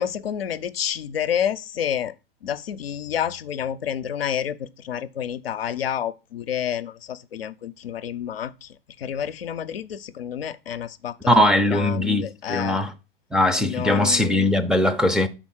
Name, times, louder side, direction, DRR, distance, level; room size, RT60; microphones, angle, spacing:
voice 1, 0.0-2.1 2.4-11.3 11.7-12.8 13.6-14.5, left 9 dB, 85° left, 0.6 m, -29 dB
voice 2, 11.3-12.9 13.3-15.3, left 1 dB, 5° right, 0.4 m, -20 dB
5.4 x 4.0 x 6.1 m
hypercardioid pair, 105°, 29 cm